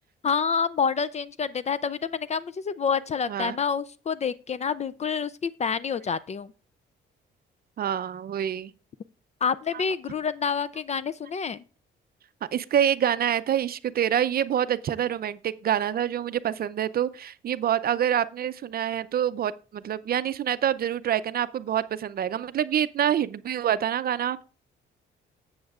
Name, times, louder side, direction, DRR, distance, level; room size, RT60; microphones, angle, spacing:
voice 1, 0.2-6.5 9.4-11.6, left 6 dB, 35° left, 0.4 m, -28 dB
voice 2, 7.8-8.7 9.7-9.8 12.5-24.4, right 10 dB, 50° right, 0.5 m, -26 dB
12.5 x 7.9 x 2.4 m
cardioid pair, 90°, 20 cm